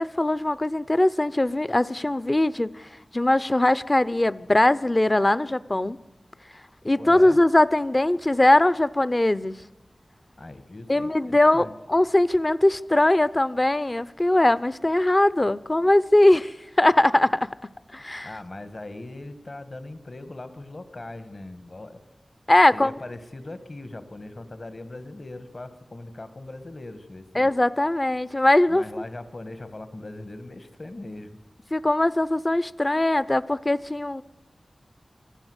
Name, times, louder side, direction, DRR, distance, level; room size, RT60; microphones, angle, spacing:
voice 1, 0.0-2.9 3.1-6.0 6.8-9.6 10.9-18.3 22.5-22.9 27.4-28.8 31.7-34.2, left 1 dB, 30° left, 0.7 m, -21 dB
voice 2, 7.0-7.4 10.4-11.7 18.2-22.0 22.7-27.5 28.7-31.3, left 2 dB, 50° left, 2.0 m, -40 dB
25.5 x 15.5 x 8.2 m
wide cardioid pair, 60°, 0 cm